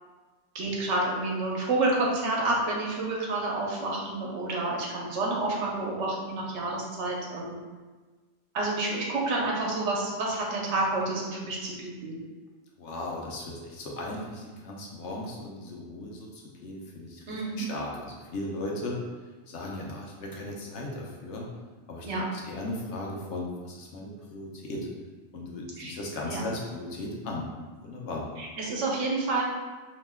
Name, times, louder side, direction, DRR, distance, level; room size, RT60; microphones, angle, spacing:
voice 1, 0.5-7.6 8.5-12.2 17.3-17.7 22.0-22.3 25.8-25.9 26.3-26.4 28.4-29.4, right 2 dB, 90° right, -3 dB, 1.0 m, -29 dB
voice 2, 12.8-19.0 19.5-21.5 21.9-24.9 25.3-27.5 27.8-28.3, left 2 dB, 80° left, -2 dB, 0.9 m, -37 dB
2.8 x 2.1 x 3.3 m, 1.3 s
omnidirectional pair, 1.2 m